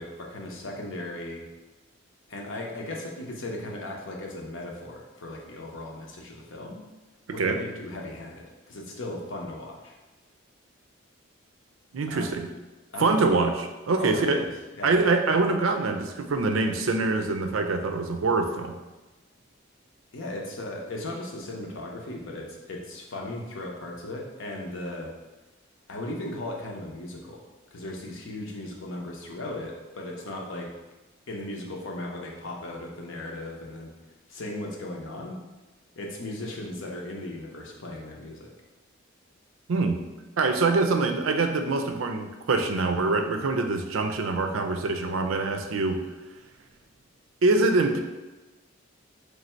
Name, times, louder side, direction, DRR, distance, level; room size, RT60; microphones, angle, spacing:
voice 1, 0.0-1.4 2.3-6.8 7.3-10.0 12.1-12.3 12.9-13.4 14.0-15.0 20.1-25.1 25.9-27.4 27.7-30.7 31.3-33.9 34.3-35.4 36.0-38.5, left 1 dB, 75° left, -1 dB, 0.7 m, -37 dB
voice 2, 11.9-12.5 13.0-14.4 14.8-18.8 39.7-40.0 40.4-46.0 47.4-48.0, right 3 dB, 85° right, 6 dB, 0.4 m, -24 dB
3.3 x 2.6 x 4.3 m, 1.2 s
head